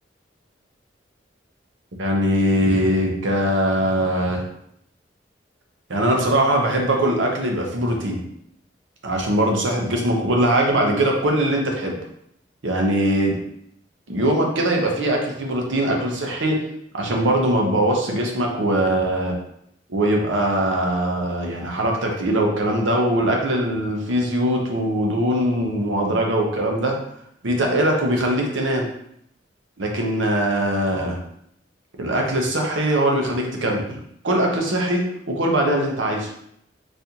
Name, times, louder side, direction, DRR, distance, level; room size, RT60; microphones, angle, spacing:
voice 1, 2.0-4.4 5.9-8.2 9.0-12.0 12.6-13.3 14.1-16.6 16.9-19.3 19.9-27.0 27.4-28.9 29.8-31.2 32.0-34.0 34.2-36.3, right 1 dB, 90° right, 1 dB, 0.8 m, -21 dB
4.0 x 2.6 x 2.8 m, 0.72 s
head